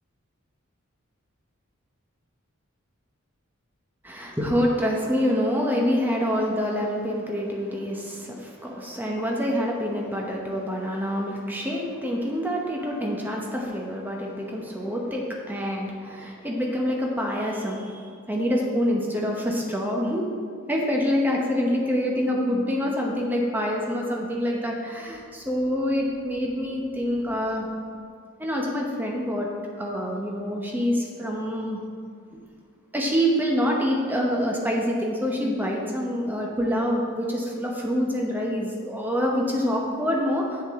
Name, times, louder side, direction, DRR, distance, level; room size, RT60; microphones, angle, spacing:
voice 1, 4.0-20.3 20.7-27.7 28.4-29.5 29.8-31.8 32.9-40.6, equal, 10° right, -1 dB, 1.0 m, -26 dB
8.1 x 7.2 x 3.7 m, 2.1 s
head